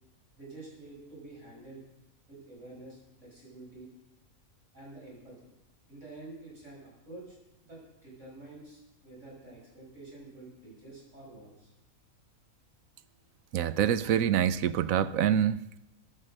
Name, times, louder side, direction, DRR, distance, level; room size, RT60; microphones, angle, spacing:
voice 1, 0.4-1.8 2.3-3.9 4.7-5.3 5.9-7.4 7.6-11.7, right 2 dB, 60° right, -3 dB, 6.5 m, -48 dB
voice 2, 13.5-15.8, right 9 dB, 80° right, 14 dB, 1.1 m, -26 dB
15.0 x 9.5 x 6.4 m, 0.87 s
omnidirectional pair, 1.4 m